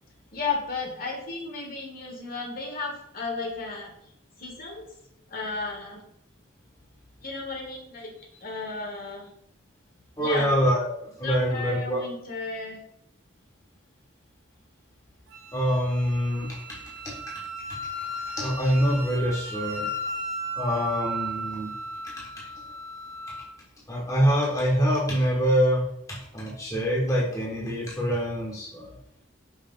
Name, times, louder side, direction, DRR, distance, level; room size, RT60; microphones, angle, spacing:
voice 1, 0.3-3.9 4.4-4.9 5.3-6.0 7.2-8.1 8.4-9.3 10.2-10.5 11.2-12.8, left 3 dB, 45° left, 0 dB, 1.4 m, -33 dB
voice 2, 10.2-10.9 11.2-12.0 15.5-16.6 17.0-17.1 18.4-19.9 20.6-21.7 23.9-28.9, equal, 15° left, -4 dB, 1.1 m, -25 dB
Wind instrument woodwind instrument, 15.3-23.5, equal, 75° right, 1.2 m, -36 dB
5.6 x 3.2 x 5.3 m, 0.74 s
head